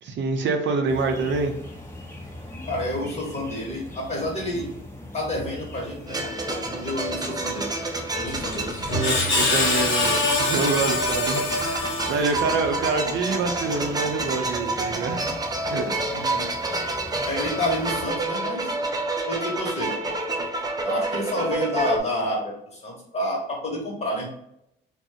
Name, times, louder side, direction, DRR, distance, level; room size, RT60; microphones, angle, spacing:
voice 1, 0.0-1.5 8.9-15.2 15.7-15.8 16.2-16.4, right 4 dB, 65° right, 3 dB, 0.6 m, -26 dB
sound 1, 0.9-18.1, left 1 dB, 10° left, 0.8 m, -41 dB
voice 2, 2.6-4.7 5.1-7.7 8.1-8.7 16.1-16.5 17.3-18.7 19.3-19.9 20.8-24.3, left 1 dB, 35° left, -2 dB, 1.4 m, -29 dB
sound 2, 6.1-22.0, right 2 dB, 20° right, 0.4 m, -29 dB
Screech, 8.2-12.5, left 3 dB, 75° left, 0.8 m, -25 dB
2.5 x 2.0 x 3.6 m, 0.80 s
cardioid pair, 90°, 20 cm